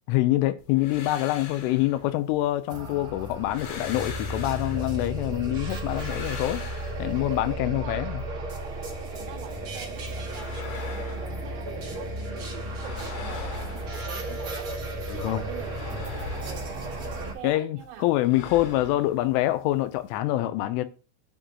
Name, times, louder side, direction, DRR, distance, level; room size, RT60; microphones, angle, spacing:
voice 1, 0.1-6.6 7.0-8.2 15.1-15.4 17.4-20.9, left 15 dB, 85° left, 3.2 m, -25 dB
sound 1, 0.6-2.8 3.2-5.2 5.6-7.5 9.9-12.1 12.4-14.7 15.0-17.5 17.8-20.2, left 5 dB, 65° left, 2.6 m, -42 dB
sound 2, 2.7-17.3, right 1 dB, 50° right, 1.7 m, -34 dB
voice 2, 7.6-8.3 9.1-14.7 15.1-16.7 17.2-18.1 18.8-19.2, right 12 dB, 80° right, 3.9 m, -44 dB
10.0 x 5.4 x 4.0 m
omnidirectional pair, 5.7 m